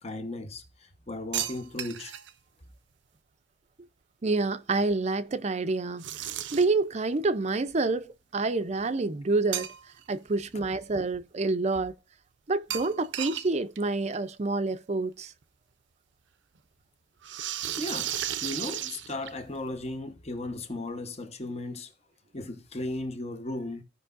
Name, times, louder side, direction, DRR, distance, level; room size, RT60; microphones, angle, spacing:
voice 1, 0.0-2.1 17.6-21.9 22.3-23.8, left 2 dB, 35° left, 1.1 m, -36 dB
sound 1, 1.3-2.3 6.0-6.8 9.5-10.1 10.5-10.6 12.7-13.5 13.8-13.9 14.1-14.2 15.4-15.5 17.2-19.6, right 11 dB, 90° right, 0.6 m, -34 dB
voice 2, 4.2-9.7 10.1-11.9 12.5-15.3, right 3 dB, 40° right, 0.5 m, -28 dB
15.5 x 5.4 x 2.5 m
head